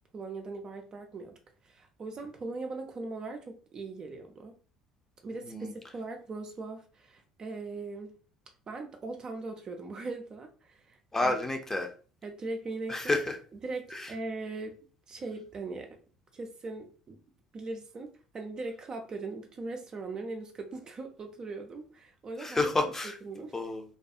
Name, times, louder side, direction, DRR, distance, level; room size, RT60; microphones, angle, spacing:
voice 1, 0.1-1.4 1.6-4.6 5.2-8.1 8.7-11.4 12.2-13.2 13.6-14.8 15.1-15.9 16.3-17.2 17.5-22.7 23.0-23.5, right 3 dB, 35° right, 4 dB, 0.4 m, -40 dB
voice 2, 11.1-11.9 12.9-13.4 13.9-14.1 22.4-23.2 23.5-23.8, left 2 dB, 15° left, 4 dB, 0.6 m, -29 dB
2.3 x 2.3 x 2.7 m, 0.38 s
figure-of-eight pair, 60°, 2 cm